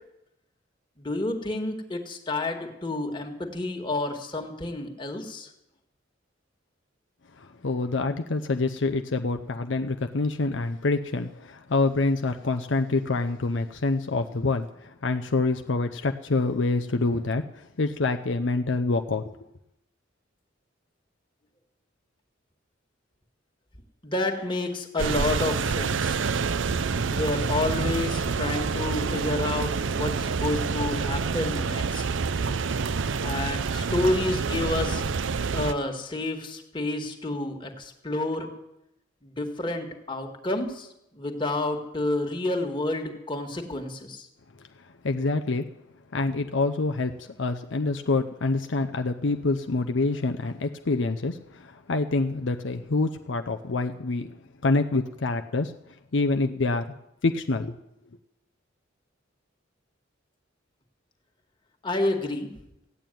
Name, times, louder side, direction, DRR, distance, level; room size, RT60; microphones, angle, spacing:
voice 1, 1.0-5.5 24.0-26.2 27.1-32.0 33.2-35.0 35.5-38.5 39.2-40.9 41.1-44.3 61.8-62.5, left 2 dB, 25° left, 3 dB, 1.9 m, -29 dB
voice 2, 7.4-19.4 44.8-45.7 46.1-55.7 56.1-56.9 57.2-57.8, left 3 dB, 65° left, 6 dB, 0.7 m, -26 dB
sound 1, 25.0-35.7, right 5 dB, 70° right, 0.6 m, -27 dB
15.5 x 8.9 x 9.2 m, 0.85 s
head